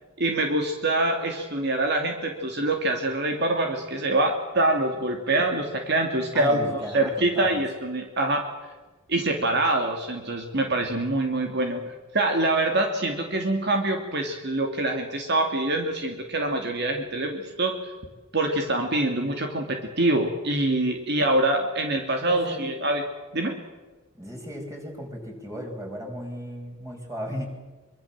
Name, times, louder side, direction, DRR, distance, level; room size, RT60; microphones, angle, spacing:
voice 1, 0.2-8.4 9.1-17.8 18.3-23.0 23.3-23.6, right 2 dB, 55° right, 3 dB, 2.6 m, -25 dB
voice 2, 6.3-7.7 22.3-22.6 24.2-27.5, equal, 15° right, 1 dB, 5.6 m, -35 dB
24.5 x 23.5 x 7.5 m, 1.2 s
head